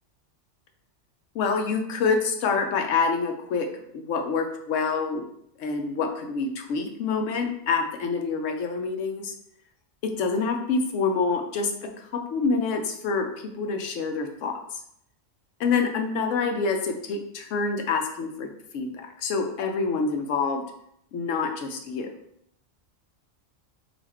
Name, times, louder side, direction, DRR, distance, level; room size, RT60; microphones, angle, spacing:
voice 1, 1.3-3.7 3.9-5.3 5.6-9.3 10.0-13.3 13.6-14.8 15.6-20.6 21.1-22.1, left 4 dB, 90° left, 4 dB, 1.0 m, -27 dB
4.2 x 2.4 x 4.3 m, 0.74 s
omnidirectional pair, 1.2 m